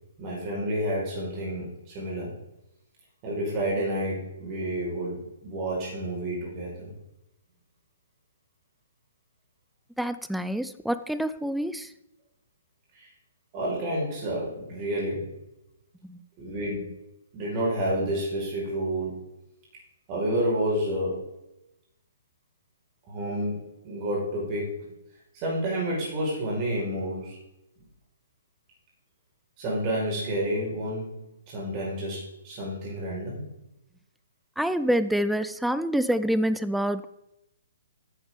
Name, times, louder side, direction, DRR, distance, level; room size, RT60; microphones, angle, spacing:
voice 1, 0.2-2.4 3.2-6.9 12.9-13.1 13.5-15.4 16.4-17.0 17.3-19.2 20.1-21.3 23.1-24.9 25.3-27.4 29.6-33.4, right 1 dB, 30° right, -4 dB, 4.8 m, -30 dB
voice 2, 10.0-11.9 16.0-16.2 34.6-37.1, equal, ahead, 13 dB, 0.5 m, -27 dB
12.5 x 9.5 x 3.7 m, 0.89 s
figure-of-eight pair, 125°, 0 cm